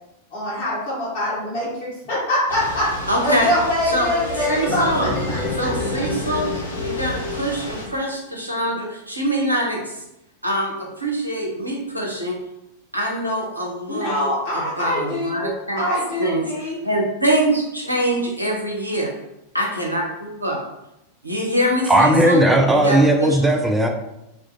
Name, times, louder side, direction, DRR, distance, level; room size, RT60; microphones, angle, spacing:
voice 1, 0.3-2.9 3.2-5.7 13.9-16.8, left 1 dB, 45° left, -9 dB, 0.9 m, -24 dB
Thunder / Rain, 2.5-7.9, left 1 dB, 70° left, 0.5 m, -30 dB
voice 2, 3.1-3.5 3.9-4.1 4.5-5.1 5.6-6.5 6.8-10.0 10.4-12.4 12.9-15.8 16.2-19.1 19.5-20.6 21.2-22.4 22.7-23.5, right 1 dB, 85° right, -1 dB, 0.6 m, -24 dB
sound 1, 3.9-8.0, left 3 dB, 10° left, 0.9 m, -31 dB
voice 3, 21.9-23.9, right 1 dB, 10° right, 3 dB, 0.3 m, -16 dB
2.3 x 2.1 x 2.9 m, 0.86 s
figure-of-eight pair, 90°, 0 cm